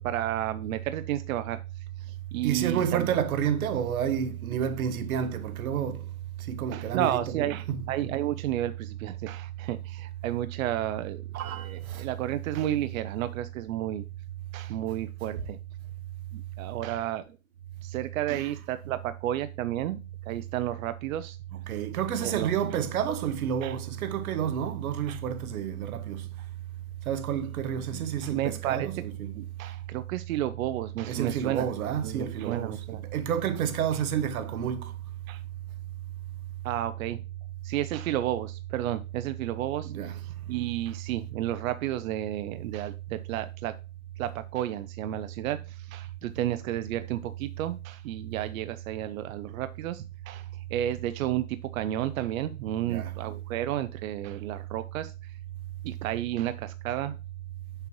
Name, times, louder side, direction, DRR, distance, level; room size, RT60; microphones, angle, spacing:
voice 1, 0.0-3.0 6.7-11.2 11.6-14.0 14.5-15.6 16.3-17.4 17.8-21.4 22.2-22.5 23.6-23.8 25.1-25.2 27.9-29.0 29.3-31.7 32.0-33.0 35.3-35.4 36.6-37.2 37.6-43.7 44.2-55.4 55.8-57.2, right 12 dB, 70° right, 0.6 m, -32 dB
voice 2, 2.4-6.0 6.5-7.9 11.3-12.0 18.3-18.5 21.7-26.2 27.1-29.3 31.0-32.8 33.1-34.9 39.8-40.1 52.8-53.1, right 8 dB, 90° right, 1.0 m, -30 dB
6.7 x 6.0 x 3.0 m
supercardioid pair, 155°, 42 cm